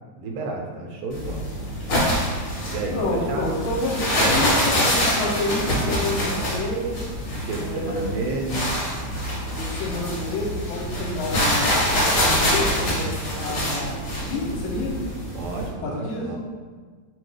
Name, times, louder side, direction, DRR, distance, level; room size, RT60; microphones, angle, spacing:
voice 1, 0.2-1.4 2.7-3.5 7.4-8.7 15.3-16.4, right 3 dB, 85° right, 1 dB, 2.2 m, -31 dB
sound 1, 1.1-15.7, equal, 50° left, 1.6 m, -25 dB
voice 2, 2.9-7.0 7.6-8.3 9.5-11.7 12.2-13.9 14.3-15.0 15.8-16.3, left 2 dB, 75° left, -2 dB, 1.9 m, -29 dB
4.8 x 2.3 x 4.7 m, 1.5 s
omnidirectional pair, 3.6 m